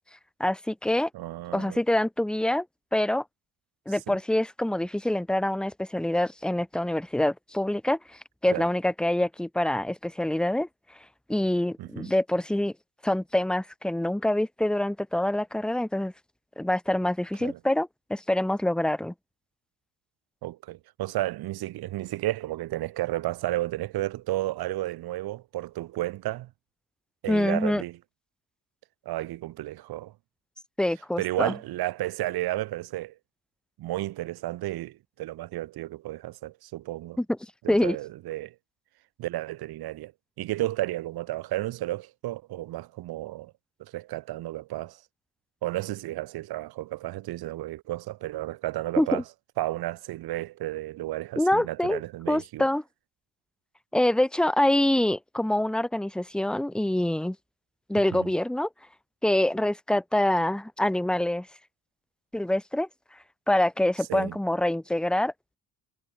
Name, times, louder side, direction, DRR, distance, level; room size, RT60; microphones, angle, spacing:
voice 1, 0.4-1.1 1.5-2.6 2.9-3.2 3.9-8.0 8.4-10.7 11.3-12.7 13.0-16.1 16.6-19.1 27.3-27.8 30.8-31.5 37.2-37.4 37.7-38.0 49.0-49.2 51.4-52.0 52.3-52.8 53.9-57.4 57.9-58.7 59.2-61.5 62.3-62.9 63.5-65.6, left 1 dB, ahead, 0.9 m, -25 dB
voice 2, 1.1-1.8 3.9-4.2 8.5-8.7 11.8-12.1 17.4-17.6 20.4-26.5 27.2-28.0 29.0-30.1 31.2-33.2 33.8-37.2 37.6-38.5 39.2-40.1 40.4-43.5 43.8-45.0 45.6-49.2 49.6-52.7 58.1-58.3 64.1-64.4, right 16 dB, 70° right, 1.3 m, -32 dB
cardioid pair, 145°, 38 cm